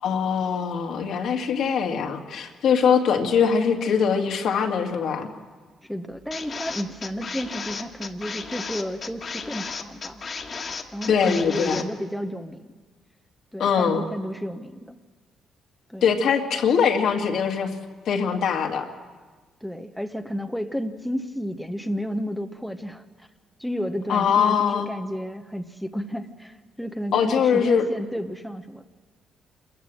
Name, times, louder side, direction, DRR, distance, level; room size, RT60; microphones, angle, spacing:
voice 1, 0.0-5.3 11.1-11.8 13.6-14.0 16.0-17.7 18.1-18.9 24.1-24.9 27.1-27.8, left 7 dB, 70° left, 2 dB, 2.2 m, -22 dB
voice 2, 5.9-10.2 10.9-12.7 13.5-15.0 15.9-16.0 19.6-23.0 23.6-28.8, equal, ahead, 6 dB, 1.1 m, -32 dB
sound 1, 6.3-11.8, left 5 dB, 45° left, 1.9 m, -34 dB
27.0 x 14.5 x 7.7 m, 1.4 s
cardioid pair, 90°, 0 cm